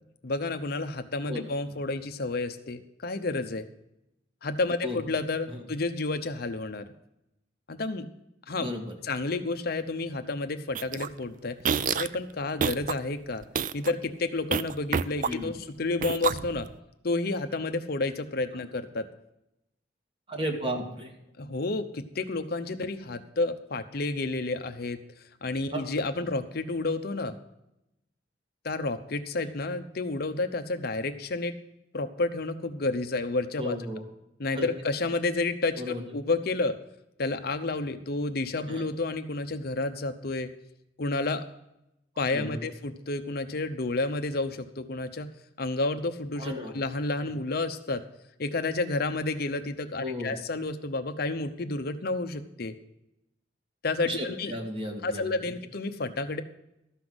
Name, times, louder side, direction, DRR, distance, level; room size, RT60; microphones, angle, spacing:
voice 1, 0.2-3.7 4.4-6.8 7.7-8.1 8.5-8.7 9.0-11.6 11.9-13.4 13.7-16.7 17.0-19.1 21.4-25.0 25.4-27.3 28.6-31.5 31.9-33.8 34.4-36.8 37.2-40.5 41.0-41.4 42.2-45.3 45.6-48.0 48.4-52.7 53.8-54.5 55.0-56.4, left 3 dB, 55° left, 8 dB, 0.8 m, -30 dB
voice 2, 8.6-9.0 15.3-15.5 20.3-21.1 25.7-25.9 33.6-34.0 34.6-34.7 35.8-36.0 38.7-38.9 42.3-42.7 46.4-46.7 50.0-50.3 54.0-55.4, equal, 30° right, 2 dB, 2.1 m, -34 dB
sound 1, 10.8-11.1 11.6-12.2 12.6-13.0 13.4-13.9 14.5-15.6 16.0-16.7, right 6 dB, 45° right, 0.4 m, -28 dB
13.0 x 5.7 x 7.8 m, 0.84 s
head